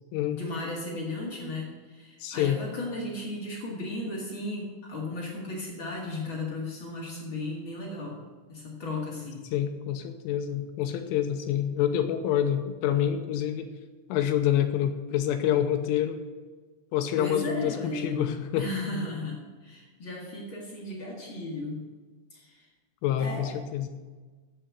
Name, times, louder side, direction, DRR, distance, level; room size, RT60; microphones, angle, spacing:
voice 1, 0.3-8.2 8.5-9.4 17.2-21.8 22.3-22.7 23.2-23.6, left 2 dB, 60° left, -2 dB, 1.3 m, -35 dB
voice 2, 2.2-2.6 9.5-13.7 14.1-16.2 16.9-18.7 23.0-23.9, left 10 dB, 85° left, 6 dB, 3.2 m, -27 dB
10.0 x 8.5 x 7.5 m, 1.3 s
omnidirectional pair, 5.8 m